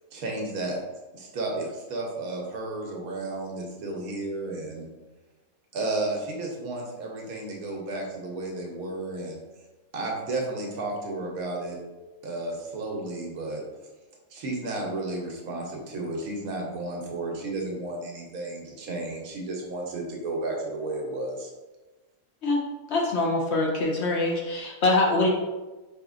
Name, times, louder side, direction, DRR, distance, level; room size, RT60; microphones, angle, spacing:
voice 1, 0.1-0.8 1.1-4.9 5.7-9.4 9.9-11.8 12.2-13.6 14.3-21.5, right 2 dB, 85° right, -1 dB, 1.3 m, -32 dB
voice 2, 22.9-25.3, left 2 dB, 60° left, -1 dB, 0.8 m, -24 dB
4.8 x 2.8 x 2.4 m, 1.2 s
omnidirectional pair, 1.5 m